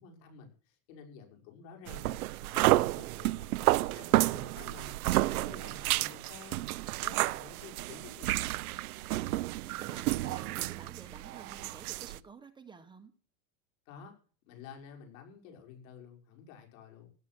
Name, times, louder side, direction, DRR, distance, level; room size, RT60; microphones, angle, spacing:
voice 1, 0.0-3.5 3.9-4.9 5.2-8.4 13.9-14.1 14.5-17.1, left 6 dB, 60° left, 2 dB, 6.3 m, -51 dB
sound 1, 1.9-12.2, right 17 dB, 70° right, 0.9 m, -31 dB
voice 2, 9.2-13.1, right 5 dB, 10° right, 6 dB, 1.1 m, -51 dB
16.0 x 12.5 x 6.1 m, 0.40 s
supercardioid pair, 155°, 45 cm